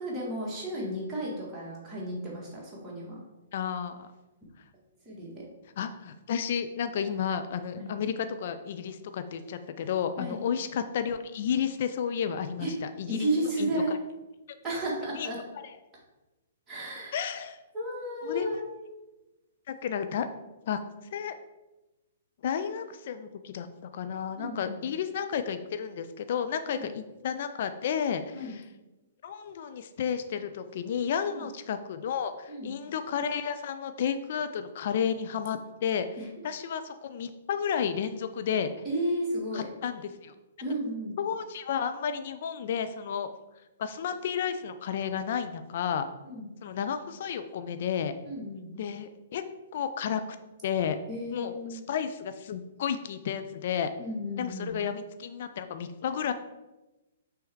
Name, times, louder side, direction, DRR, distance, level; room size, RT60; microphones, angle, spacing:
voice 1, 0.0-3.2 5.1-5.4 7.8-7.9 10.2-10.4 12.6-12.7 13.1-13.9 14.6-15.4 16.7-17.2 17.7-18.7 24.4-24.8 26.7-26.9 28.3-28.5 31.3-31.5 32.5-32.7 36.2-36.3 38.9-39.7 40.6-41.2 46.2-46.5 48.2-48.7 51.1-51.8 54.0-54.8, right 1 dB, 15° right, -6 dB, 2.0 m, -33 dB
voice 2, 3.5-4.1 5.8-13.3 13.6-14.0 15.2-15.3 17.1-17.6 18.2-18.5 19.7-20.3 20.6-20.8 21.1-21.4 22.4-23.7 23.9-28.6 29.2-36.1 36.4-38.7 39.5-40.3 41.2-43.3 43.8-46.1 46.6-48.1 48.8-49.4 49.7-50.2 50.6-51.0 51.3-53.9 54.4-56.3, left 8 dB, 50° left, 9 dB, 0.4 m, -32 dB
6.0 x 3.4 x 4.6 m, 1.1 s
figure-of-eight pair, 115°, 0 cm